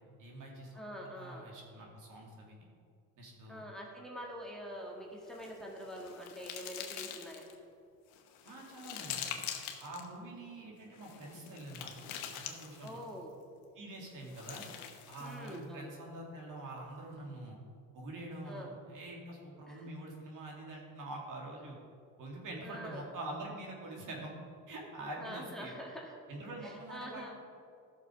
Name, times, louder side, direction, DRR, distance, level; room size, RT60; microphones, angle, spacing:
voice 1, 0.2-2.7 3.2-3.7 8.4-9.4 9.8-11.9 12.3-13.0 13.7-14.7 15.1-17.6 17.9-21.8 22.2-24.3 24.7-25.7 26.3-27.3, right 1 dB, 60° right, -1 dB, 2.6 m, -45 dB
voice 2, 0.7-1.5 3.5-7.5 12.8-13.4 15.2-15.9 18.5-18.8 19.7-19.9 22.6-23.1 25.2-26.2 26.6-27.3, equal, ahead, -2 dB, 1.7 m, -45 dB
sound 1, 5.3-7.6 8.1-10.1 10.9-13.1 14.1-15.6, left 9 dB, 90° left, 1.1 m, -44 dB
13.0 x 6.5 x 5.0 m, 2.4 s
cardioid pair, 95°, 35 cm